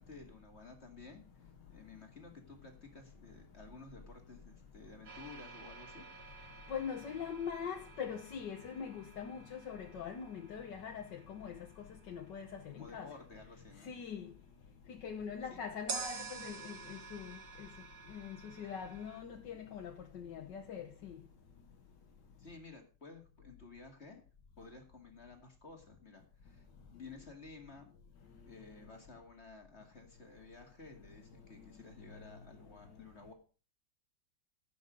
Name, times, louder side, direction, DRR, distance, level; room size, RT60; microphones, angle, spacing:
voice 1, 0.0-6.1 12.7-13.9 15.5-15.6 22.4-24.2 24.6-27.9 28.5-33.3, left 3 dB, 35° left, 2.5 m, -54 dB
sound 1, 5.1-13.0 15.9-19.2, right 5 dB, 60° right, 2.1 m, -49 dB
voice 2, 6.7-11.6 12.1-13.1 13.8-14.3 15.0-17.7 18.1-21.1, left 7 dB, 70° left, 1.7 m, -43 dB
16.5 x 6.6 x 5.1 m
omnidirectional pair, 2.0 m